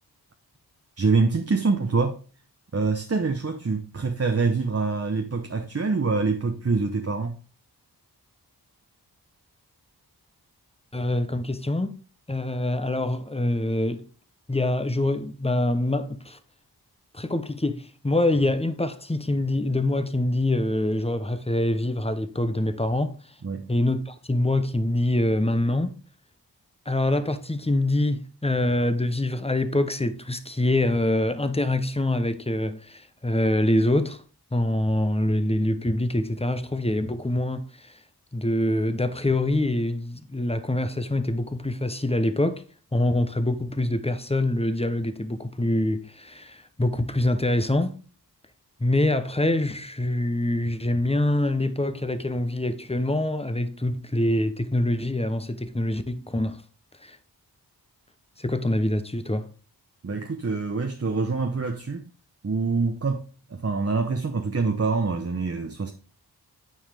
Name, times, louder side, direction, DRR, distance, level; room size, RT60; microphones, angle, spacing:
voice 1, 1.0-2.2 2.7-7.4 23.4-23.7 60.0-62.0 62.4-63.2 63.5-65.9, right 4 dB, 35° right, 0.9 m, -25 dB
voice 2, 10.9-12.0 12.3-14.0 14.5-16.4 17.1-23.2 23.7-26.0 26.9-34.2 34.5-38.0 38.3-42.6 42.9-48.0 48.8-56.6 57.0-57.2 58.4-59.5, left 1 dB, 15° left, 0.9 m, -25 dB
9.1 x 4.8 x 3.5 m
cardioid pair, 45°, 40 cm